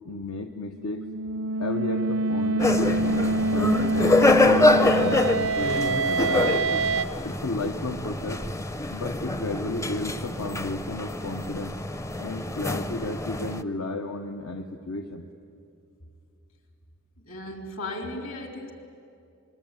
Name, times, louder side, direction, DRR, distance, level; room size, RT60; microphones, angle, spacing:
voice 1, 0.1-1.0 1.6-4.2 4.4-6.6 7.2-8.4 8.9-11.8 12.2-15.3, left 2 dB, 90° left, 4 dB, 1.1 m, -33 dB
sound 1, 0.8-7.0, right 2 dB, 70° right, 0.6 m, -26 dB
sound 2, 2.6-13.6, left 2 dB, 15° left, 0.5 m, -25 dB
voice 2, 17.2-18.7, left 1 dB, 65° left, 3 dB, 3.5 m, -36 dB
26.5 x 21.5 x 9.1 m, 2.5 s
head